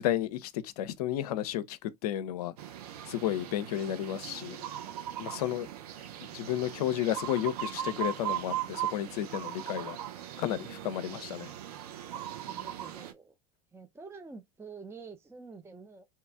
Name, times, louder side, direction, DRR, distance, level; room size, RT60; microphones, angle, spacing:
voice 1, 0.0-2.5 3.1-4.6 5.2-5.7 6.3-10.0 10.4-11.5, left 12 dB, 75° left, 0.5 m, -32 dB
sound 1, 2.6-13.1, right 11 dB, 80° right, 0.7 m, -39 dB
voice 2, 12.5-13.4 13.7-16.1, right 4 dB, 15° right, 0.5 m, -48 dB
2.8 x 2.3 x 3.3 m
hypercardioid pair, 75°, 20 cm